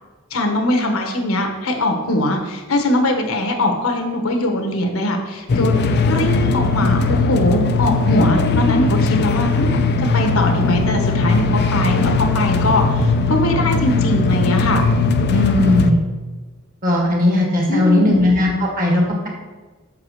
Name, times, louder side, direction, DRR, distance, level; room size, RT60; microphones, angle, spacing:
voice 1, 0.3-5.8 6.1-9.8 10.1-14.8 17.7-18.2, left 1 dB, 70° left, 3 dB, 1.2 m, -21 dB
sound 1, 5.5-15.9, left 3 dB, 50° left, 0.5 m, -18 dB
voice 2, 15.3-16.0 16.8-19.3, left 1 dB, 40° right, -1 dB, 1.9 m, -17 dB
6.0 x 4.8 x 6.3 m, 1.3 s
head